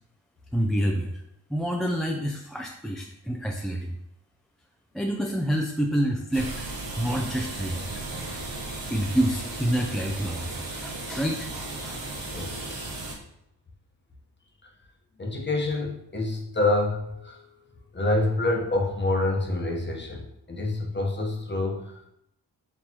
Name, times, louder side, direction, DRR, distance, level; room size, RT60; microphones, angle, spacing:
voice 1, 0.5-1.2 1.5-3.8 4.9-6.5 7.0-7.9 8.9-11.5 11.8-12.0, equal, ahead, 1 dB, 0.4 m, -27 dB
sound 1, 6.3-13.1, right 2 dB, 80° right, 1.0 m, -35 dB
voice 2, 12.3-12.9 15.2-22.1, left 2 dB, 25° left, 1 dB, 1.0 m, -27 dB
4.3 x 3.3 x 2.9 m, 0.78 s
cardioid pair, 50°, 43 cm